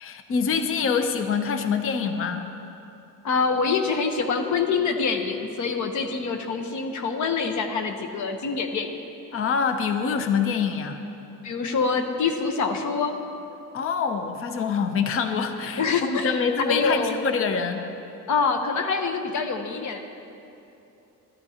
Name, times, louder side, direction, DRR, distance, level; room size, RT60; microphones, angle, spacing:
voice 1, 0.0-2.5 9.3-11.0 13.7-17.9, left 6 dB, 40° left, 7 dB, 0.6 m, -25 dB
voice 2, 3.2-9.0 11.4-13.2 15.8-17.2 18.3-20.0, left 5 dB, 55° left, 5 dB, 1.0 m, -25 dB
15.5 x 12.0 x 2.8 m, 2.9 s
cardioid pair, 145°, 35 cm